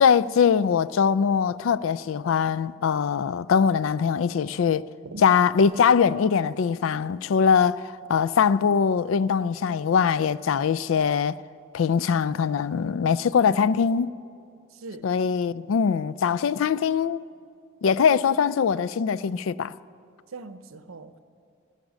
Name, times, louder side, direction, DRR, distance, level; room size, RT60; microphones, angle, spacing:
voice 1, 0.0-4.9 5.2-11.4 11.7-14.1 15.0-17.2 17.8-19.7, left 6 dB, 75° left, 0.3 m, -22 dB
voice 2, 14.7-15.1 20.3-21.2, right 3 dB, 90° right, 0.7 m, -40 dB
16.5 x 12.0 x 6.3 m
head